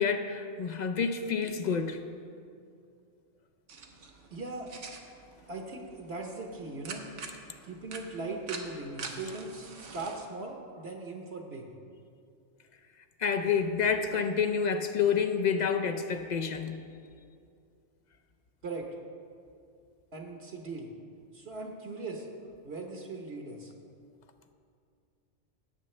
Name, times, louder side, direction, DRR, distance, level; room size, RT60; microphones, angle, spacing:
voice 1, 0.0-2.0 13.2-16.8, left 6 dB, 50° left, 7 dB, 0.5 m, -28 dB
sound 1, 3.7-10.2, right 4 dB, 85° right, 1.2 m, -46 dB
voice 2, 4.3-4.7 5.5-7.1 7.6-11.7 18.6-18.9 20.1-20.9 21.3-22.3 22.6-23.7, right 3 dB, 60° right, 1 dB, 1.2 m, -39 dB
16.5 x 8.1 x 3.2 m, 2.4 s
omnidirectional pair, 1.2 m